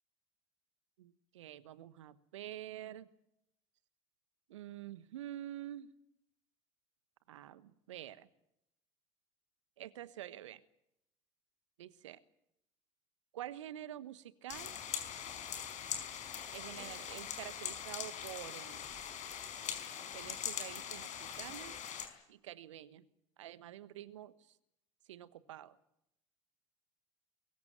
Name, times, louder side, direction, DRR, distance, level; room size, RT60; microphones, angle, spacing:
voice 1, 1.0-3.1 4.5-5.9 7.3-8.3 9.8-10.6 11.8-12.2 13.3-14.8 16.5-18.8 20.1-21.8 22.3-23.0 23.4-24.3 25.1-25.8, right 12 dB, 75° right, 16 dB, 1.3 m, -47 dB
sound 1, 14.5-22.1, left 9 dB, 50° left, 4.8 m, -42 dB
23.5 x 22.0 x 7.8 m, 0.81 s
figure-of-eight pair, 60°, 16 cm